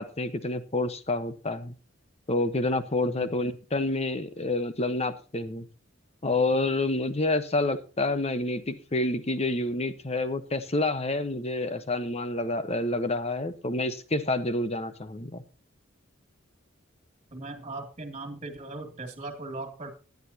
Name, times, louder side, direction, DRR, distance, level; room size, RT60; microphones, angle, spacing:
voice 1, 0.0-1.7 2.3-5.7 6.2-15.4, left 2 dB, 30° left, 11 dB, 1.1 m, -28 dB
voice 2, 17.3-19.9, right 2 dB, 35° right, 5 dB, 2.5 m, -38 dB
17.5 x 10.5 x 2.9 m, 0.34 s
head